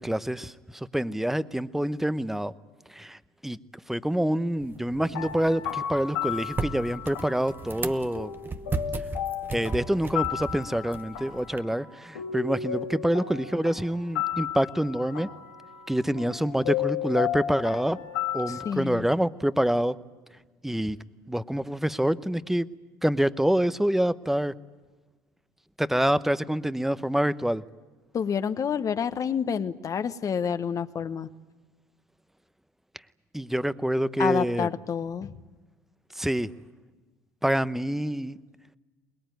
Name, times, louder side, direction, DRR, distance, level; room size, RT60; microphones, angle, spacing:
voice 1, 0.0-2.5 2.9-3.6 3.9-8.3 9.5-15.3 15.9-18.0 18.3-20.0 20.6-21.0 21.3-22.7 23.0-24.5 25.8-27.6 33.3-34.7 36.1-36.5 37.4-38.4, right 1 dB, 5° right, 14 dB, 0.9 m, -26 dB
sound 1, 4.6-11.6, right 3 dB, 20° right, 1.0 m, -36 dB
sound 2, 5.0-18.7, left 10 dB, 90° left, 2.0 m, -34 dB
voice 2, 18.5-19.1 28.1-31.3 34.2-35.4, left 7 dB, 35° left, 11 dB, 1.1 m, -28 dB
23.5 x 21.0 x 9.3 m, 1.2 s
hypercardioid pair, 80°, 9 cm